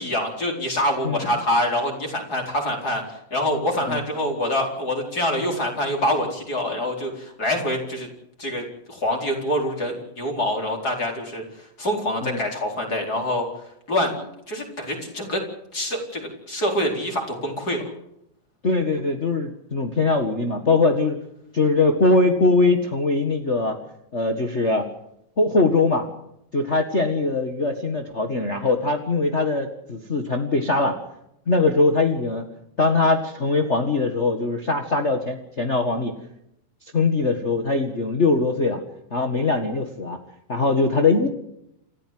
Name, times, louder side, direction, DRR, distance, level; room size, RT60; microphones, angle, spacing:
voice 1, 0.0-8.1 8.4-13.5 13.9-15.4 15.7-17.8, left 1 dB, 25° left, 2 dB, 4.8 m, -25 dB
voice 2, 18.6-21.2 21.5-23.8 24.1-24.9 25.4-26.0 26.5-31.0 31.5-32.5 32.8-36.2 36.9-38.8 39.1-40.2 40.5-41.3, left 3 dB, 45° left, 4 dB, 0.9 m, -21 dB
28.5 x 14.5 x 7.8 m, 0.79 s
omnidirectional pair, 4.2 m